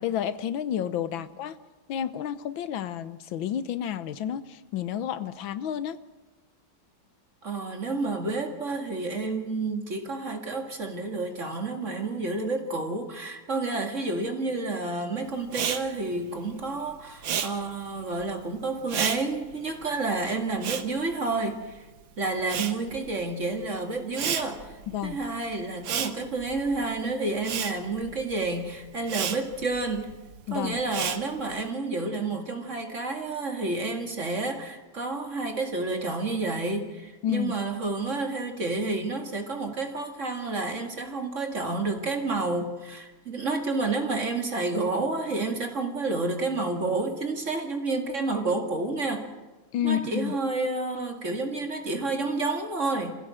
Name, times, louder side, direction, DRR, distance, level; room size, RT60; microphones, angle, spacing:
voice 1, 0.0-1.6 1.9-6.0 24.9-25.2 30.5-30.8 37.2-37.5 49.7-50.3, left 10 dB, 85° left, 1.7 m, -30 dB
voice 2, 7.4-21.9 22.2-30.1 30.5-49.3 49.8-53.2, right 3 dB, 40° right, 2.4 m, -30 dB
Respiratory sounds, 15.5-21.9 22.2-31.7, right 8 dB, 85° right, 1.9 m, -34 dB
26.0 x 16.0 x 7.6 m
omnidirectional pair, 2.1 m